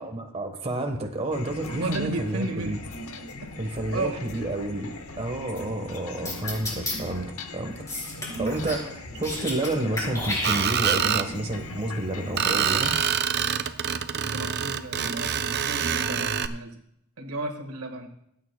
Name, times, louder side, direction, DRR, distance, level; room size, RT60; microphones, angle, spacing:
voice 1, 0.0-2.8 3.6-7.8 8.4-12.9, right 2 dB, 30° right, 4 dB, 1.2 m, -30 dB
sound 1, 1.3-13.1, left 2 dB, 75° left, 1.1 m, -39 dB
voice 2, 1.7-2.8 3.9-4.2 13.6-16.8 17.2-18.1, right 2 dB, 85° right, 4 dB, 1.6 m, -34 dB
sound 2, 6.3-6.9 7.9-8.8 9.1-9.7 10.0-11.0, left 2 dB, 15° left, 3.8 m, -31 dB
Screech, 10.4-11.3 12.4-16.5, right 8 dB, 50° right, 0.5 m, -26 dB
25.0 x 8.8 x 2.2 m, 0.75 s
head